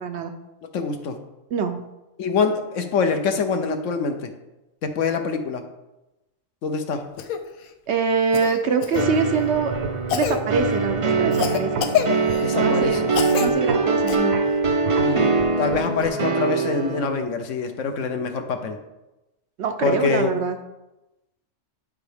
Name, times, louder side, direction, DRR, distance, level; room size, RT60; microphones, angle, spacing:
voice 1, 0.0-0.3 1.5-1.8 7.9-9.7 10.1-11.9 12.5-13.0 13.4-14.4 19.6-20.6, right 5 dB, 65° right, 7 dB, 0.8 m, -24 dB
voice 2, 0.7-1.2 2.2-4.3 4.8-5.6 6.6-7.0 12.4-13.1 15.0-15.3 15.6-18.8 19.8-20.3, left 5 dB, 65° left, 6 dB, 1.1 m, -24 dB
Cough, 7.2-7.4 8.3-9.1 10.1-10.4 11.3-12.5 13.1-13.5 14.1-14.2 16.0-16.1, left 9 dB, 90° left, 1.1 m, -26 dB
sound 1, 9.0-17.2, right 4 dB, 50° right, 0.4 m, -23 dB
sound 2, 9.5-16.1, right 3 dB, 85° right, 1.3 m, -34 dB
10.5 x 4.6 x 3.4 m, 0.98 s
omnidirectional pair, 1.4 m